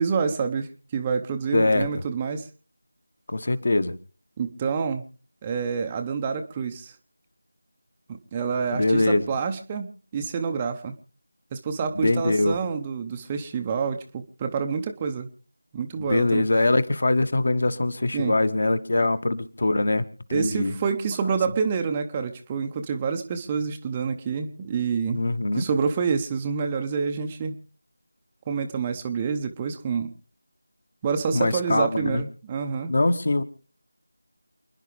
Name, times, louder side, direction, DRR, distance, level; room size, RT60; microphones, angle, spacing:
voice 1, 0.0-2.5 4.4-5.0 5.4-7.0 8.1-10.9 11.5-15.3 15.7-16.5 18.1-18.3 19.0-19.1 20.3-25.2 25.6-27.6 28.5-30.1 31.0-32.9, right 5 dB, 15° right, 5 dB, 0.7 m, -27 dB
voice 2, 1.5-1.9 3.3-3.9 8.7-9.3 11.9-12.6 16.0-20.7 25.1-25.7 31.3-32.2 32.9-33.4, left 2 dB, 45° left, 12 dB, 1.3 m, -23 dB
29.0 x 10.5 x 3.3 m, 0.38 s
figure-of-eight pair, 165°, 0 cm